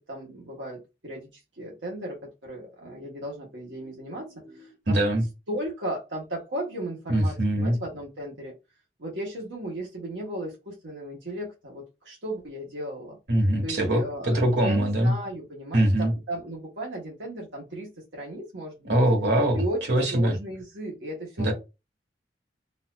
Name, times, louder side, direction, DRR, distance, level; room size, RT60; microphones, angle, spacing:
voice 1, 0.1-5.0 5.5-8.5 9.0-13.2 13.6-19.0 19.5-21.5, right 1 dB, 90° right, 1.2 m, -36 dB
voice 2, 4.9-5.2 7.1-7.8 13.3-15.1 15.7-16.1 18.8-19.6 19.9-20.3 21.4-21.5, right 1 dB, 75° right, 1.5 m, -22 dB
4.1 x 2.6 x 2.4 m
head